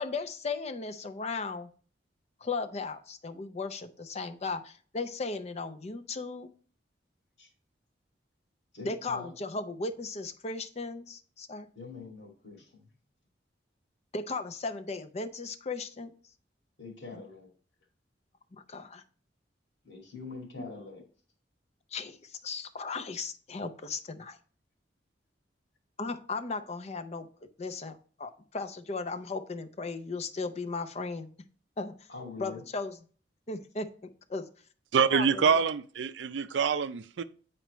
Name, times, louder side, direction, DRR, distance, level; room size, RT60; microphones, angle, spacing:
voice 1, 0.0-1.7 2.4-6.5 8.8-11.7 14.1-16.1 17.1-17.2 18.5-19.0 20.6-20.7 21.9-24.4 26.0-27.3 27.6-31.3 31.8-31.9 32.4-33.0 33.5-33.9 34.3-34.5 35.1-35.4, left 3 dB, 35° left, 0.6 m, -36 dB
voice 2, 8.7-9.3 11.8-12.6 16.8-17.5 19.8-21.0 32.1-32.6, left 4 dB, 80° left, 2.3 m, -43 dB
voice 3, 34.9-37.2, right 6 dB, 85° right, 0.4 m, -26 dB
8.8 x 4.5 x 3.0 m
head